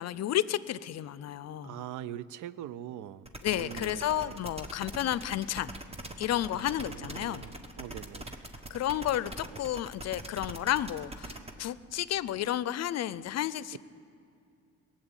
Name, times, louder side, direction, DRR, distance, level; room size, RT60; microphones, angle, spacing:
voice 1, 0.0-1.7 3.4-5.7 6.2-7.5 8.7-13.8, left 12 dB, 60° left, 17 dB, 0.5 m, -32 dB
voice 2, 1.6-4.4 6.5-8.3 13.7-13.8, right 11 dB, 80° right, 18 dB, 0.5 m, -43 dB
sound 1, 3.3-11.5, right 1 dB, 20° right, 1.1 m, -42 dB
18.5 x 7.7 x 8.9 m, 2.5 s
cardioid pair, 90°, 30 cm